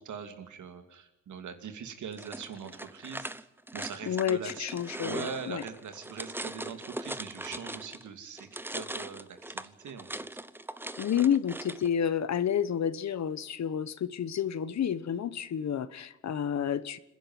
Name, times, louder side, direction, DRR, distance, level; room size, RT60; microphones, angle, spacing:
voice 1, 0.0-3.4 3.7-10.3, right 6 dB, 80° right, 7 dB, 2.6 m, -42 dB
sound 1, 2.1-8.1 8.4-11.9, right 1 dB, 5° right, 0.8 m, -40 dB
voice 2, 4.1-5.6 11.0-17.0, left 8 dB, 65° left, 16 dB, 1.1 m, -30 dB
27.5 x 10.5 x 9.4 m, 0.97 s
cardioid pair, 90°, 29 cm